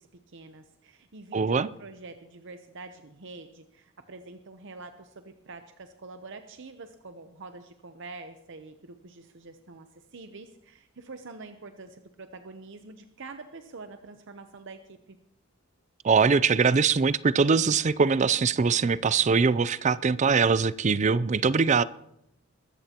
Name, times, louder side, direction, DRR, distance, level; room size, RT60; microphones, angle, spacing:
voice 1, 0.0-15.2, right 3 dB, 60° right, 0.8 m, -46 dB
voice 2, 1.3-1.7 16.0-21.8, right 5 dB, 35° right, 0.4 m, -22 dB
21.5 x 14.0 x 2.9 m
head